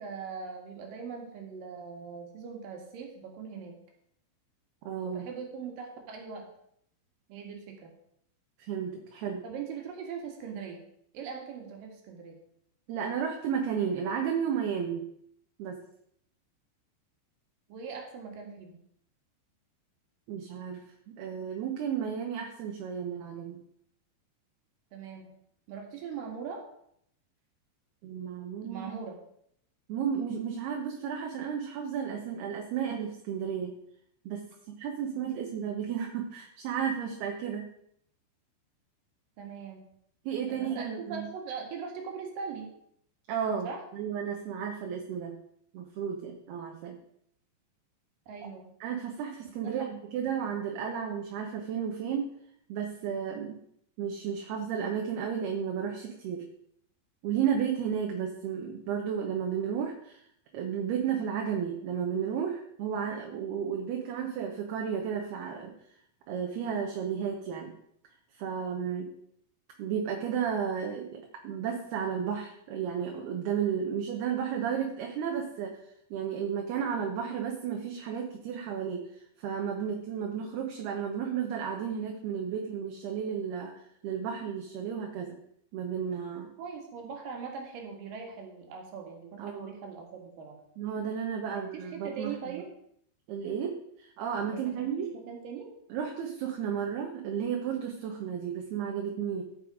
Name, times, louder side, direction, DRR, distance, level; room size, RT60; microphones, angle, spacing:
voice 1, 0.0-3.8 5.0-6.5 7.3-7.9 9.4-10.8 11.1-12.4 17.7-18.8 24.9-25.3 25.7-26.6 28.6-29.2 39.4-39.8 40.5-42.7 43.6-43.8 48.3-48.7 49.6-49.9 86.6-90.5 91.5-92.7 94.5-95.7, right 6 dB, 55° right, 2 dB, 3.1 m, -41 dB
voice 2, 4.8-5.3 8.6-9.4 12.9-15.0 15.6-15.8 20.3-20.8 21.2-23.6 28.0-28.9 29.9-33.8 34.3-34.4 34.8-37.7 40.3-41.3 43.3-45.4 45.7-47.0 48.8-52.3 52.7-53.6 54.0-56.5 57.2-60.2 60.5-65.7 66.3-67.7 68.3-69.1 69.8-75.8 76.1-79.1 79.4-85.4 85.7-86.5 89.4-89.7 90.8-92.3 93.3-95.1 95.9-99.4, right 7 dB, 70° right, 1 dB, 2.6 m, -33 dB
16.5 x 5.6 x 4.9 m, 0.70 s
omnidirectional pair, 5.6 m